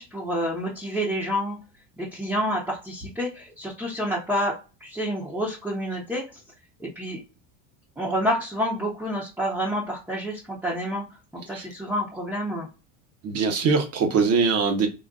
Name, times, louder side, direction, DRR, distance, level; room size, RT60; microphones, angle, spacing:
voice 1, 0.0-1.6 2.0-4.5 4.8-6.4 6.8-7.2 8.0-11.0 11.3-12.7, equal, 5° right, 0.8 m, -28 dB
voice 2, 13.2-14.9, right 5 dB, 40° right, 0.9 m, -22 dB
3.9 x 2.4 x 2.4 m
supercardioid pair, 130°, 39 cm